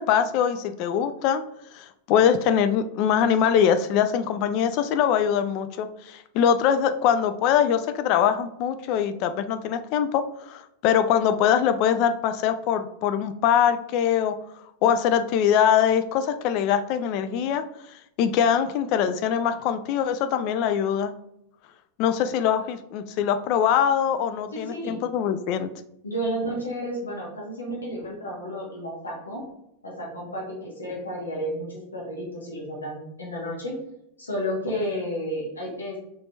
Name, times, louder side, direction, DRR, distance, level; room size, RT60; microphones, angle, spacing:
voice 1, 0.0-1.4 1.7-14.3 14.8-17.6 18.2-21.1 22.0-25.7, left 8 dB, 45° left, 10 dB, 0.3 m, -23 dB
voice 2, 24.5-25.0 26.0-29.4 29.8-33.7 34.2-36.0, equal, 75° left, -2 dB, 1.2 m, -32 dB
4.2 x 3.1 x 2.7 m, 0.81 s
figure-of-eight pair, 90°, 0 cm